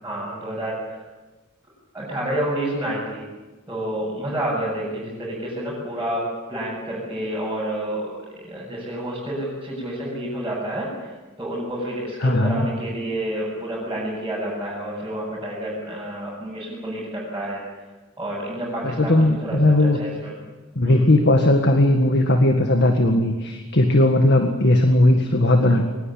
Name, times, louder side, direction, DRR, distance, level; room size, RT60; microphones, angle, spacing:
voice 1, 0.0-1.0 1.9-3.2 3.7-6.2 6.5-17.6 18.2-20.3 20.8-21.1, right 1 dB, 10° right, -8 dB, 7.8 m, -29 dB
voice 2, 12.2-12.7 19.0-20.0 20.8-25.8, left 1 dB, 55° left, 5 dB, 1.9 m, -17 dB
22.5 x 20.5 x 8.7 m, 1.2 s
head